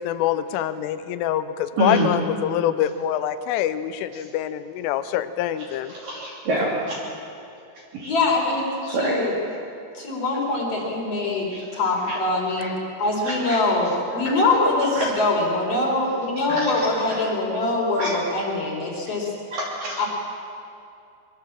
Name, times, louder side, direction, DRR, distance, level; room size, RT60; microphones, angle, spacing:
voice 1, 0.0-5.9, left 11 dB, 85° left, 12 dB, 3.3 m, -25 dB
voice 2, 1.8-2.1 5.9-7.0 7.9-8.1 8.8-9.3 11.5-11.6 12.1-12.2 12.6-12.7 13.3-13.6 15.0-15.1 16.5-17.2 18.0-18.1 19.5-20.1, right 1 dB, 50° right, -5 dB, 4.3 m, -27 dB
voice 3, 8.0-9.3 9.9-12.7 13.0-19.3 20.0-20.1, left 2 dB, 30° left, 0 dB, 4.6 m, -23 dB
24.0 x 23.5 x 7.5 m, 2.5 s
omnidirectional pair, 5.8 m